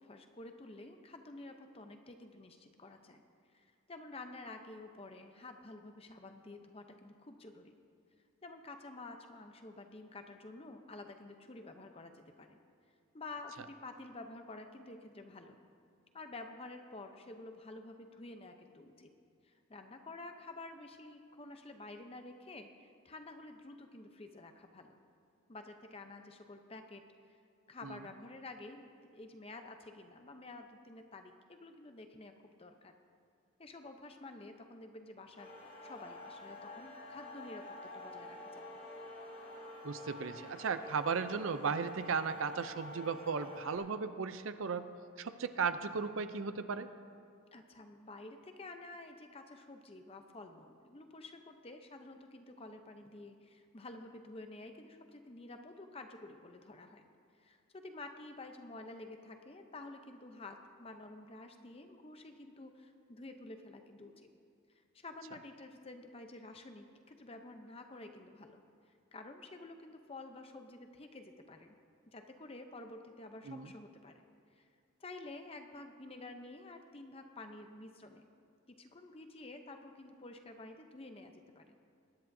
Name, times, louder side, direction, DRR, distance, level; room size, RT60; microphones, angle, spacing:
voice 1, 0.0-3.2 3.5-7.7 8.4-12.6 13.1-15.6 16.1-19.1 19.4-25.0 25.5-27.0 27.7-32.9 33.6-38.8 47.5-57.0 57.4-64.3 64.9-68.6 69.1-71.8 72.1-74.2 74.6-74.7 75.0-78.3 78.7-81.8, left 2 dB, 25° left, 6 dB, 0.7 m, -50 dB
sound 1, 35.4-43.8, left 2 dB, 65° left, 2.1 m, -48 dB
voice 2, 39.8-44.9 45.2-46.9 73.5-73.7, right 5 dB, 70° right, 11 dB, 0.5 m, -36 dB
21.5 x 10.5 x 2.7 m, 2.5 s
head